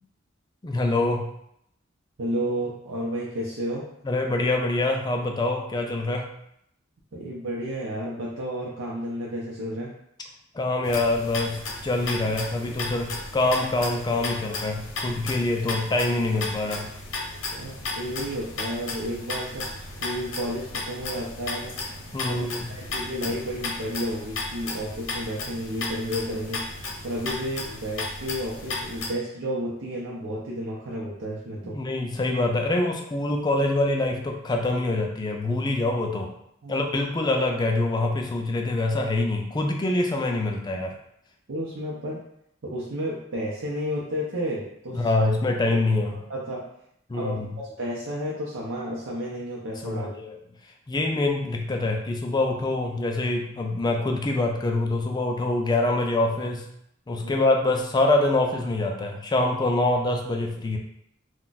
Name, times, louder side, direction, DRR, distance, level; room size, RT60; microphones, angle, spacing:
voice 1, 0.6-1.3 4.0-6.3 10.5-16.9 22.1-22.7 31.7-36.3 36.7-40.9 44.9-46.2 47.1-47.5 49.8-50.3 50.9-56.7 57.1-60.8, left 2 dB, 20° left, 2 dB, 0.4 m, -25 dB
voice 2, 2.2-3.9 7.1-9.9 17.5-19.7 20.0-21.8 22.3-31.8 36.6-36.8 41.5-42.2 42.6-45.1 45.6-45.7 46.1-46.6 47.1-50.1 57.2-57.4, equal, 80° right, -5 dB, 0.6 m, -32 dB
sound 1, 10.8-29.1, left 3 dB, 80° left, 0.7 m, -34 dB
2.3 x 2.2 x 3.9 m, 0.74 s
head